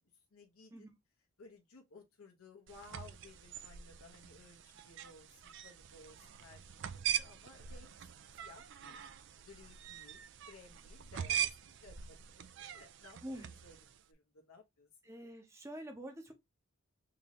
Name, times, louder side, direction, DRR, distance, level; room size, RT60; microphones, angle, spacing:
voice 1, 0.3-0.9 1.4-6.8 7.2-7.9 8.4-9.0 9.4-10.2 10.5-13.8 14.1-14.9, left 3 dB, 75° left, 0.8 m, -58 dB
sound 1, 2.7-14.0, right 9 dB, 55° right, 0.3 m, -42 dB
voice 2, 13.2-13.5 15.0-16.3, right 1 dB, 10° right, 0.7 m, -46 dB
3.8 x 2.6 x 2.9 m
head